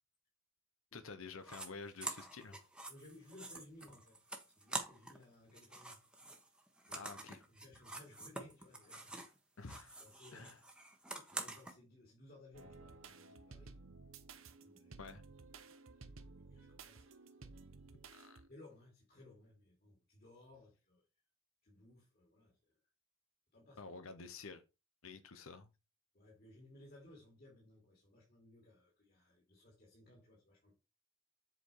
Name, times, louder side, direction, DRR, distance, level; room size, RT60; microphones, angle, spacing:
voice 1, 0.9-2.7 6.9-7.4 9.6-10.0 10.3-10.6 15.0-15.2 18.1-18.4 23.8-24.6 25.0-25.7, left 4 dB, 85° left, 0.9 m, -50 dB
sound 1, 1.4-1.7 2.0-5.2 5.5-9.4 9.6-11.7, right 2 dB, 5° right, 1.1 m, -47 dB
voice 2, 2.9-4.2 4.6-6.0 6.9-7.1 7.5-9.2 10.0-10.6 11.2-13.8 14.6-15.1 16.4-17.8 18.5-21.1 21.6-22.8 23.5-23.9 26.1-30.8, left 1 dB, 45° left, 2.9 m, -60 dB
sound 2, 12.5-18.5, right 4 dB, 80° right, 1.0 m, -55 dB
7.8 x 4.7 x 4.6 m
head